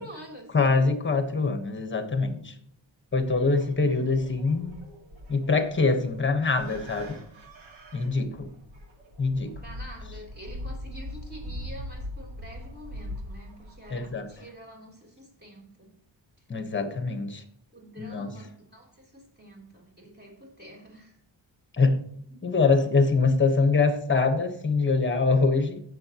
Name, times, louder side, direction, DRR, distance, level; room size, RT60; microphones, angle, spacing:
voice 1, 0.0-0.5 9.6-15.9 17.7-21.2, equal, 20° right, -1 dB, 3.4 m, -46 dB
voice 2, 0.5-2.5 3.1-4.7 5.3-7.2 7.9-8.5 9.2-9.5 13.9-14.2 16.5-17.4 18.0-18.3 21.8-22.0 22.4-25.8, left 4 dB, 25° left, 7 dB, 1.2 m, -24 dB
sound 1, 3.1-14.5, left 1 dB, 85° right, 2.1 m, -42 dB
16.5 x 6.9 x 2.9 m, 0.68 s
wide cardioid pair, 140°, 46 cm